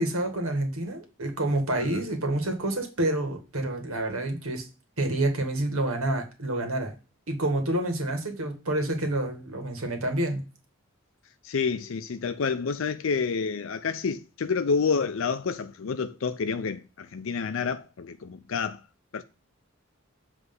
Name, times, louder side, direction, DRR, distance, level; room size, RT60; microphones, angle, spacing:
voice 1, 0.0-4.6 5.0-6.9 7.3-10.4, right 1 dB, 85° right, 1.8 m, -28 dB
voice 2, 11.4-18.8 19.1-19.2, left 5 dB, 70° left, 0.5 m, -29 dB
7.9 x 3.3 x 5.3 m
head